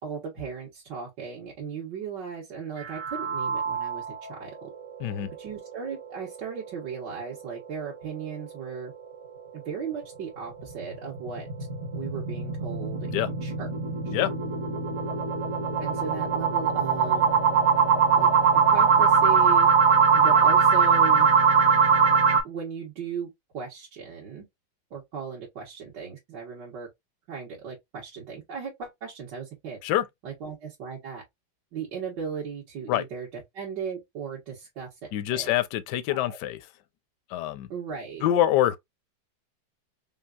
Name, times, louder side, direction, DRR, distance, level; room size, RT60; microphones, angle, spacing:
voice 1, 0.0-4.7 5.2-8.9 9.5-11.5 11.9-13.7 14.1-14.2 15.8-17.3 18.2-18.3 18.7-19.7 20.1-21.3 22.4-24.5 24.9-26.9 27.3-29.8 30.2-31.2 31.7-35.5 36.1-36.4 37.7-38.2, right 6 dB, 75° right, 2.1 m, -37 dB
sound 1, 2.8-4.3 4.7-4.8 5.2-5.3 5.7-5.8 10.6-22.4, right 6 dB, 45° right, 1.3 m, -22 dB
voice 2, 35.1-36.6 37.3-37.7 38.2-38.8, left 12 dB, 75° left, 1.2 m, -25 dB
5.4 x 2.6 x 2.3 m
omnidirectional pair, 1.9 m